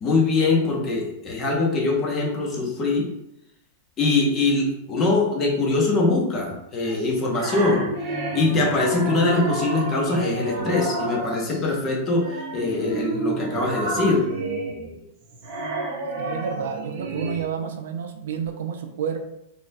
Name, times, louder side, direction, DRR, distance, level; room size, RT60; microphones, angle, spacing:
voice 1, 0.0-3.1 4.0-7.9 8.3-14.2, left 3 dB, 20° left, -1 dB, 0.6 m, -22 dB
sound 1, 6.9-11.7 12.2-17.4, right 3 dB, 35° right, 0.7 m, -30 dB
voice 2, 16.2-19.2, right 7 dB, 70° right, 6 dB, 0.4 m, -30 dB
4.0 x 2.6 x 2.6 m, 0.82 s
supercardioid pair, 170°, 0 cm